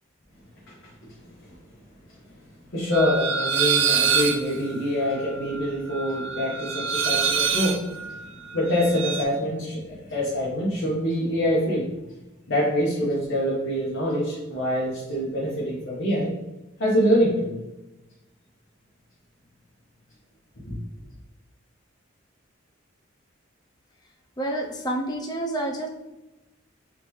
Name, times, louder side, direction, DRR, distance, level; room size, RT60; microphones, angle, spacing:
voice 1, 2.7-8.2 8.5-11.9 12.5-16.3 16.8-17.6 20.6-20.7, equal, 60° left, -7 dB, 1.1 m, -25 dB
sound 1, 2.9-9.2, right 6 dB, 65° right, 0.4 m, -26 dB
voice 2, 24.4-25.9, right 1 dB, 20° left, 1 dB, 0.5 m, -28 dB
3.8 x 3.4 x 3.1 m, 0.99 s
head